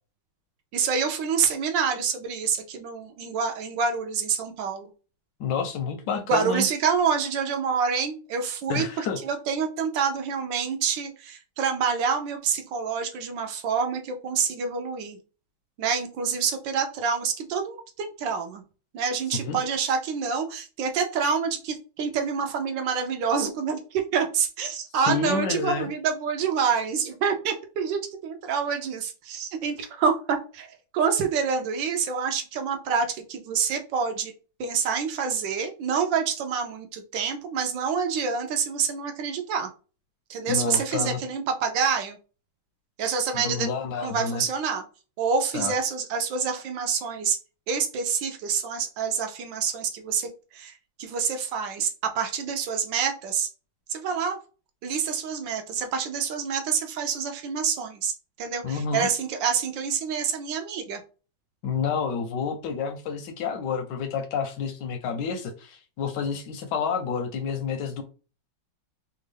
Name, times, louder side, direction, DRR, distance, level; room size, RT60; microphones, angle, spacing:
voice 1, 0.7-4.9 6.1-15.2 15.8-18.6 18.9-34.3 34.6-39.7 40.3-42.2 43.0-43.7 44.0-44.8 45.2-47.4 47.7-50.7 51.0-53.5 53.9-54.4 54.8-58.1 58.4-61.0, right 6 dB, 75° right, 1.2 m, -27 dB
voice 2, 5.4-6.7 8.7-9.2 19.3-19.6 25.1-25.9 40.5-41.2 43.3-44.4 45.5-45.7 58.6-59.1 61.6-68.0, left 5 dB, 75° left, 1.0 m, -29 dB
3.5 x 2.3 x 3.2 m
omnidirectional pair, 2.2 m